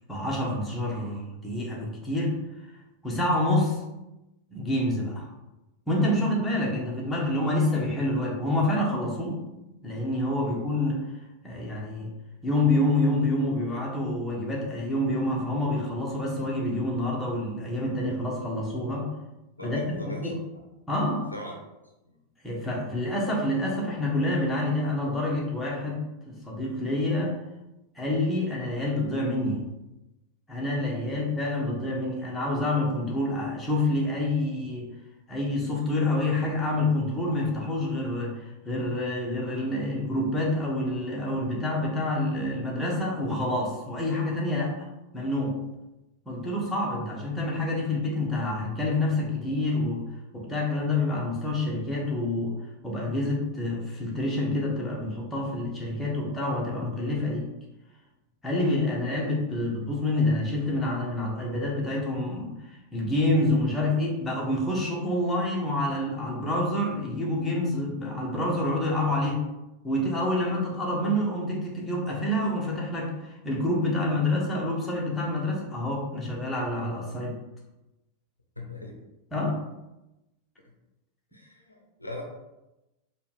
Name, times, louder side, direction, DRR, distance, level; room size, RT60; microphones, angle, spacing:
voice 1, 0.1-2.3 3.0-3.8 4.5-5.3 5.9-9.4 9.8-11.1 11.4-12.1 12.4-19.1 19.6-20.4 20.9-21.3 22.4-26.0 26.3-27.4 27.9-29.6 30.5-34.9 35.3-44.7 45.1-45.6 46.2-50.1 50.3-52.6 52.8-57.5 58.4-69.4 69.8-77.4 79.3-79.6, left 1 dB, 10° left, -4 dB, 1.2 m, -27 dB
voice 2, 19.6-20.3 21.3-21.6 22.1-22.2 31.0-31.2 78.6-79.0 81.3-82.2, left 1 dB, 85° left, 1 dB, 0.6 m, -40 dB
4.6 x 2.4 x 3.4 m, 0.97 s
figure-of-eight pair, 90°, 0 cm